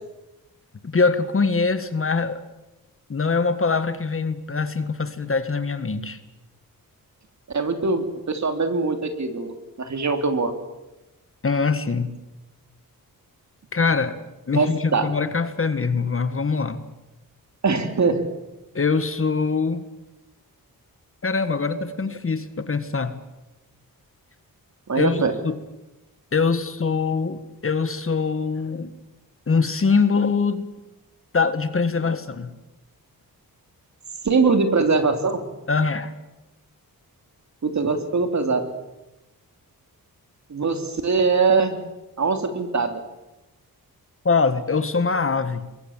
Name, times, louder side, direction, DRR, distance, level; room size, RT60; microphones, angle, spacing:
voice 1, 0.8-2.4 3.1-6.2 11.4-12.1 13.7-14.2 14.5-16.8 18.7-19.9 21.2-23.2 24.9-25.6 26.3-28.9 29.5-30.7 31.3-32.5 35.7-36.1 44.3-45.7, left 4 dB, 35° left, 11 dB, 1.7 m, -23 dB
voice 2, 7.5-10.5 14.5-15.1 17.6-18.3 24.9-25.3 34.2-35.4 37.6-38.6 40.5-41.8 42.2-43.0, right 4 dB, 50° right, 7 dB, 3.2 m, -22 dB
26.5 x 22.0 x 7.4 m, 0.99 s
wide cardioid pair, 110°, 36 cm